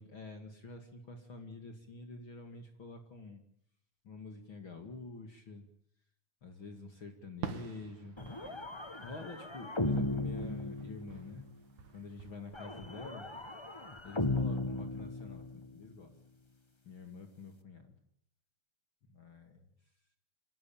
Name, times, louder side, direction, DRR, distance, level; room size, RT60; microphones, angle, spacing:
voice 1, 0.0-3.4 4.0-5.7 6.4-8.2 9.0-11.5 11.9-13.3 14.0-16.2 16.8-17.9 19.1-19.7, left 3 dB, 45° left, 5 dB, 2.9 m, -47 dB
Fireworks, 7.4-10.1 10.4-12.3, right 8 dB, 75° right, 3.1 m, -47 dB
sound 1, 8.2-11.4 12.5-15.8, left 2 dB, 15° left, 0.9 m, -37 dB
26.0 x 19.5 x 8.8 m, 0.68 s
omnidirectional pair, 3.5 m